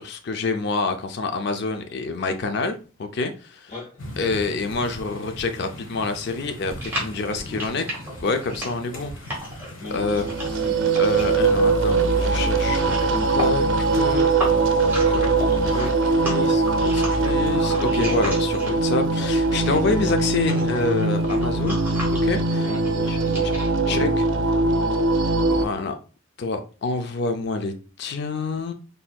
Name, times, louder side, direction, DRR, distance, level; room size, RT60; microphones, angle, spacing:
voice 1, 0.0-3.7 4.2-7.8 8.2-9.1 9.9-10.3 11.0-14.3 14.7-14.8 15.1-21.8 22.2-22.7 23.0-23.2 23.9-24.2 25.5-26.0 26.4-28.7, left 3 dB, 55° left, 7 dB, 0.5 m, -27 dB
sound 1, 4.0-19.5, equal, 85° left, 1.2 m, -41 dB
sound 2, 6.8-19.0 19.3-24.0, equal, 10° right, 1.5 m, -35 dB
voice 2, 7.3-7.9 8.9-9.1 9.4-9.5 9.8-10.2 10.6-11.0 11.6-12.3 16.2-16.6 22.6-23.5 23.8-24.1 24.6-25.0, left 2 dB, 35° left, -3 dB, 1.9 m, -39 dB
sound 3, 9.9-25.7, right 3 dB, 70° right, 0.5 m, -21 dB
4.2 x 3.4 x 2.2 m, 0.36 s
head